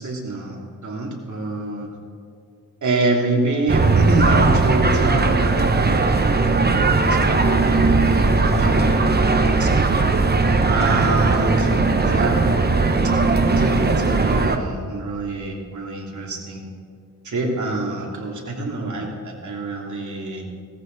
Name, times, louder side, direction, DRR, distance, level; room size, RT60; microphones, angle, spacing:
voice 1, 0.0-1.9 2.8-5.6 6.5-9.0 9.3-10.0 10.7-11.7 12.0-12.4 13.4-16.6 17.2-20.4, right 2 dB, 55° right, -1 dB, 3.0 m, -26 dB
sound 1, 3.7-14.6, right 3 dB, 25° right, 1.0 m, -18 dB
18.0 x 14.0 x 4.1 m, 2.3 s
wide cardioid pair, 110°, 36 cm